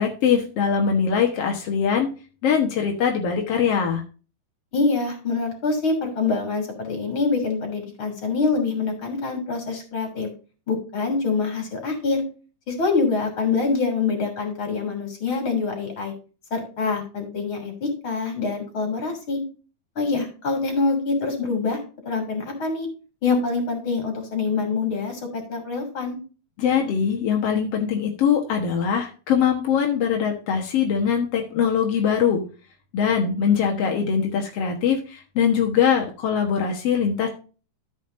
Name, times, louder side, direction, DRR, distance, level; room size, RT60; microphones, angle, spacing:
voice 1, 0.0-2.1 2.4-4.0 26.6-32.4 32.9-37.3, left 7 dB, 65° left, 1 dB, 1.5 m, -22 dB
voice 2, 4.7-10.3 10.7-12.2 12.7-16.1 16.5-19.4 20.0-21.8 22.1-22.9 23.2-26.2, left 4 dB, 30° left, 4 dB, 3.7 m, -25 dB
13.5 x 7.3 x 2.7 m, 0.35 s
omnidirectional pair, 4.7 m